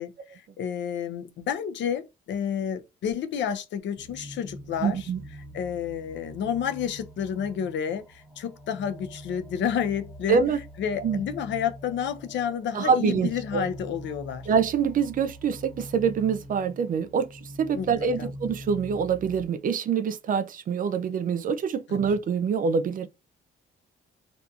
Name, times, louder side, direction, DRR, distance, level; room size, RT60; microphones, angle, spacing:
voice 1, 0.0-5.1 5.5-10.4 10.8-14.5 17.7-17.9 18.2-18.3 21.9-22.0, left 8 dB, 65° left, 0.5 m, -30 dB
sound 1, 4.0-19.5, equal, ahead, 0.6 m, -44 dB
voice 2, 4.8-5.2 10.3-10.6 11.0-11.2 12.7-13.7 14.5-23.1, right 6 dB, 45° right, 0.4 m, -25 dB
2.6 x 2.5 x 2.3 m
cardioid pair, 90°, 20 cm